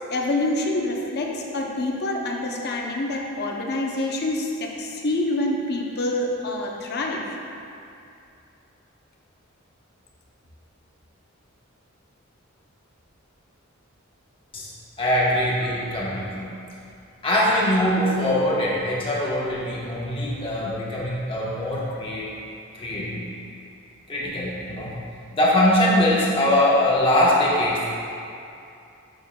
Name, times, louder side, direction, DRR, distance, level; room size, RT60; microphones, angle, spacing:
voice 1, 0.1-7.4 15.3-15.5, left 2 dB, 50° left, 0 dB, 0.7 m, -26 dB
voice 2, 15.0-16.5 17.2-22.2 22.7-23.3 24.1-24.9 25.3-27.9, left 1 dB, 25° left, -6 dB, 1.2 m, -22 dB
7.1 x 6.9 x 2.3 m, 2.6 s
head